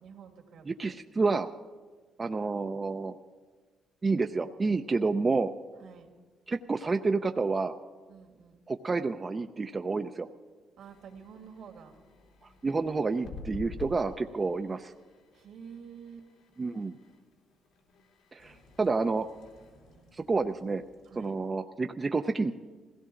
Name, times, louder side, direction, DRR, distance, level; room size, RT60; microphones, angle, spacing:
voice 1, 0.0-0.9 5.8-6.1 8.1-8.6 10.8-12.0 15.3-16.3 19.9-20.2 21.1-21.4, right 6 dB, 75° right, 3 dB, 2.3 m, -49 dB
voice 2, 0.7-1.5 2.2-3.1 4.0-5.5 6.5-7.7 8.7-10.3 12.6-14.9 16.6-17.0 18.3-19.3 20.1-20.8 21.2-22.5, right 3 dB, 30° right, 7 dB, 0.5 m, -29 dB
sound 1, 10.8-21.5, left 3 dB, 85° left, 2.7 m, -50 dB
21.0 x 16.5 x 3.8 m, 1.4 s
cardioid pair, 90°, 0 cm